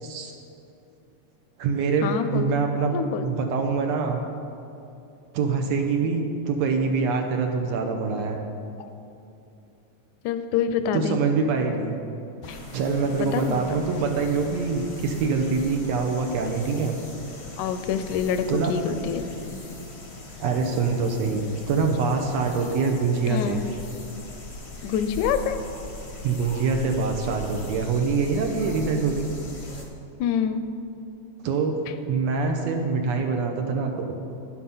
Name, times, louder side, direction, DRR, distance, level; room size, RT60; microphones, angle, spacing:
voice 1, 0.0-0.3 1.6-4.2 5.3-8.4 10.9-12.0 12.7-17.0 18.5-18.7 20.4-23.6 26.2-29.3 31.4-31.8 32.1-34.1, right 4 dB, 75° right, 3 dB, 1.8 m, -25 dB
voice 2, 2.0-2.5 2.9-3.3 10.2-11.2 12.5-12.6 13.3-13.6 17.6-19.6 23.2-23.7 24.8-25.7 30.2-30.6, left 7 dB, 85° left, 10 dB, 2.0 m, -26 dB
sound 1, 12.4-29.8, left 2 dB, 55° left, 0.7 m, -39 dB
11.0 x 9.4 x 5.6 m, 2.7 s
omnidirectional pair, 3.5 m